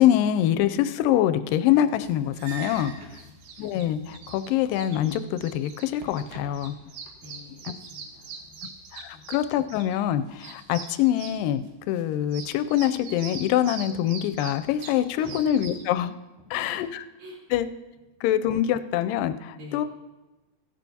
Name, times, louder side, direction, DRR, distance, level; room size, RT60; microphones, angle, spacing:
voice 1, 0.0-2.9 3.6-6.8 8.9-16.2 16.5-16.9 17.5-17.7 18.2-19.9, left 11 dB, 80° left, 11 dB, 2.1 m, -24 dB
sound 1, 2.0-15.9, right 5 dB, 90° right, 3.0 m, -42 dB
voice 2, 2.8-3.4 7.2-9.3 15.2-15.4 16.4-16.9 17.2-17.6 19.5-19.9, left 2 dB, 55° right, -5 dB, 4.5 m, -47 dB
16.0 x 13.0 x 2.8 m, 1.1 s
omnidirectional pair, 4.2 m